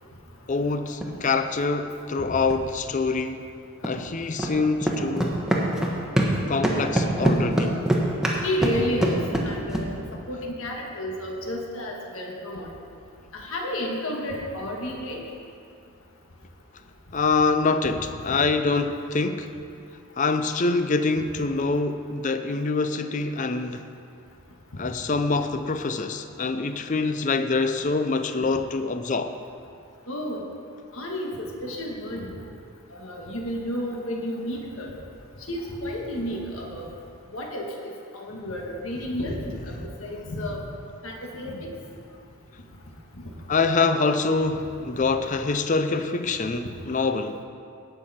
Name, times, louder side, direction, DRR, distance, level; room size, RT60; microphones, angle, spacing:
voice 1, 0.5-3.5 3.8-5.4 6.5-7.8 17.1-19.5 20.2-23.9 24.8-29.3 43.5-47.4, left 3 dB, 35° left, 9 dB, 0.5 m, -25 dB
sound 1, 0.9-1.1 2.5-2.6 3.8-3.9 4.4-4.5 4.8-6.4 6.6-9.9, right 1 dB, 5° right, 1.0 m, -23 dB
voice 2, 8.4-9.2 9.4-9.9 10.3-12.7 13.3-15.2 18.3-18.4 30.1-30.4 30.9-32.3 32.9-34.9 35.5-36.9 37.3-39.7 40.0-40.6 41.0-41.7, left 1 dB, 65° left, -1 dB, 1.6 m, -31 dB
17.5 x 6.6 x 4.3 m, 2.4 s
head